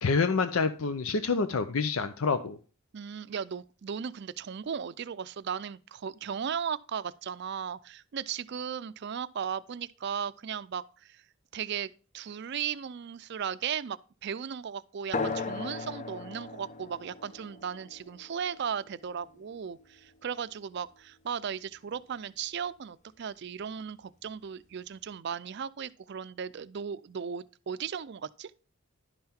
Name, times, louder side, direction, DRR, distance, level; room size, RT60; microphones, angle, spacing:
voice 1, 0.0-2.6, left 4 dB, 85° left, 0.6 m, -27 dB
voice 2, 2.9-11.2 11.5-28.5, right 7 dB, 55° right, 0.4 m, -36 dB
sound 1, 15.1-20.2, left 3 dB, 35° left, 0.7 m, -38 dB
11.0 x 5.7 x 4.3 m
head